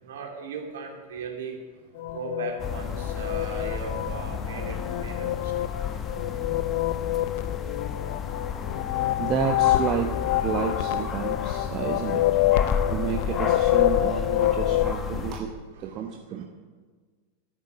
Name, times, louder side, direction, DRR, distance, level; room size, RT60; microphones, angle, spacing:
voice 1, 0.0-1.6 2.1-5.7 15.8-16.1 16.3-16.5, right 5 dB, 60° right, 1 dB, 2.9 m, -37 dB
sound 1, 2.0-14.9, left 14 dB, 50° left, 0.6 m, -27 dB
sound 2, 2.6-15.4, left 6 dB, 25° left, 1.2 m, -32 dB
voice 2, 9.2-12.3 12.9-15.5 15.8-16.4, right 8 dB, 35° right, 4 dB, 1.0 m, -30 dB
14.5 x 8.8 x 7.6 m, 1.4 s
figure-of-eight pair, 90°, 0 cm